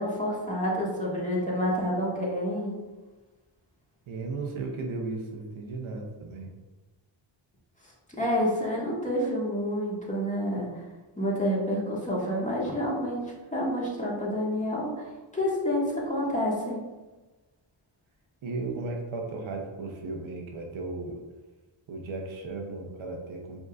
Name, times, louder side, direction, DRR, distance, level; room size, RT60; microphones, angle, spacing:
voice 1, 0.0-2.7 8.1-10.8 11.2-15.1 15.3-16.9, equal, 15° left, -5 dB, 1.5 m, -28 dB
voice 2, 4.1-6.5 18.4-21.2 21.9-23.6, right 3 dB, 70° right, 1 dB, 0.8 m, -35 dB
5.2 x 3.7 x 2.4 m, 1.2 s
cardioid pair, 75°, 49 cm